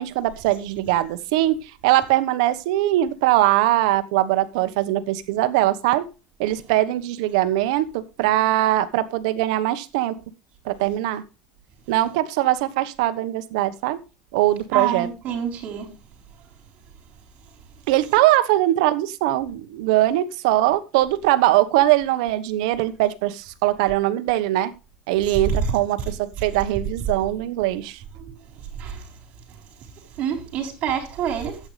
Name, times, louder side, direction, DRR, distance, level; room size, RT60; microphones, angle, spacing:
voice 1, 0.0-6.1 6.4-10.2 10.6-11.2 11.9-14.0 14.3-15.1 17.9-24.7 25.1-28.0, right 15 dB, 75° right, 1.1 m, -21 dB
voice 2, 14.7-15.9 25.5-25.7 28.2-28.4 28.8-29.0 30.2-31.6, right 8 dB, 40° right, 4.0 m, -26 dB
13.0 x 8.8 x 3.3 m
cardioid pair, 160°, 3 cm